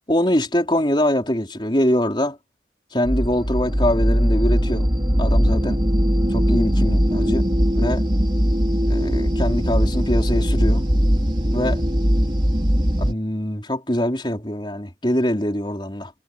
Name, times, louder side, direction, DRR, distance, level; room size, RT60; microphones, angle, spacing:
voice 1, 0.1-2.4 2.9-4.9 5.2-5.8 6.3-7.5 7.7-8.0 8.9-10.9 11.5-11.8 13.0-16.1, left 1 dB, 25° left, 4.6 m, -23 dB
sound 1, 3.0-13.1, equal, 25° right, 2.6 m, -20 dB
head